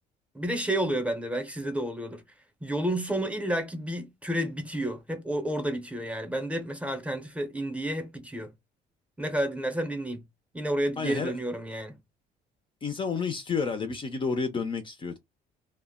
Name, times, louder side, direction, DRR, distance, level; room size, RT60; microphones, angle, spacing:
voice 1, 0.3-2.2 2.6-8.5 9.2-10.2 10.5-12.0, right 1 dB, 5° right, 0.7 m, -30 dB
voice 2, 11.0-11.3 12.8-15.2, left 5 dB, 30° left, 0.4 m, -30 dB
2.2 x 2.0 x 3.5 m
cardioid pair, 110°, 17 cm